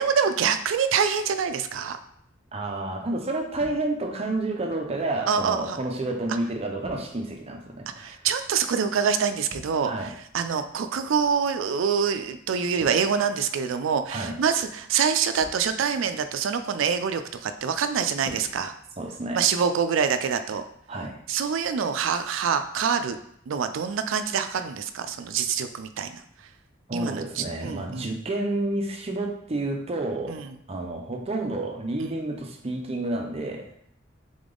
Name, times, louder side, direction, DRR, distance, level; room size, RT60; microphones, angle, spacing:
voice 1, 0.0-2.0 5.3-5.8 8.0-18.7 19.3-20.6 21.3-23.2 23.5-26.2 26.9-28.1 30.3-30.5 32.0-32.1, right 6 dB, 80° right, 10 dB, 0.4 m, -25 dB
voice 2, 2.5-8.2 9.8-10.2 14.1-14.4 19.0-19.4 20.9-21.2 26.9-30.4 30.7-33.7, right 2 dB, 30° right, 3 dB, 0.6 m, -30 dB
sound 1, 3.6-4.2 6.8-7.5 9.5-10.2 12.8-13.7 15.4-16.0 18.2-19.3, right 1 dB, 55° right, 0.9 m, -47 dB
3.8 x 3.5 x 3.7 m, 0.70 s
head